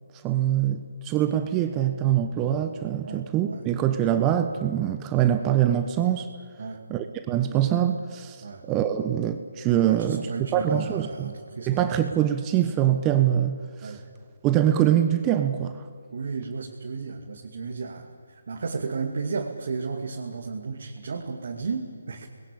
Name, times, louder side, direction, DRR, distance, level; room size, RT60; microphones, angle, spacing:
voice 1, 0.2-6.3 6.9-8.4 8.6-10.3 10.5-11.3 11.7-13.9 14.4-15.8, right 11 dB, 20° right, 8 dB, 1.1 m, -24 dB
voice 2, 3.0-3.6 6.6-6.8 8.4-8.6 9.8-11.8 13.8-14.0 16.1-22.3, right 4 dB, 60° right, 1 dB, 2.5 m, -34 dB
29.0 x 20.5 x 8.6 m, 2.2 s
figure-of-eight pair, 150°, 0 cm